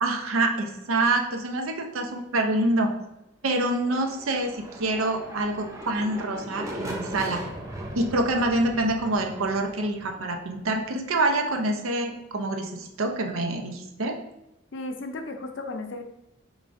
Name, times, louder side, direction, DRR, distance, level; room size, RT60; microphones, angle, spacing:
voice 1, 0.0-2.9 3.4-7.4 7.9-14.2, right 2 dB, 85° right, 4 dB, 0.6 m, -26 dB
sound 1, 3.7-11.5, right 1 dB, 15° right, 0.4 m, -39 dB
voice 2, 14.7-16.0, left 2 dB, 60° left, 6 dB, 0.5 m, -34 dB
4.9 x 3.3 x 2.6 m, 0.88 s
head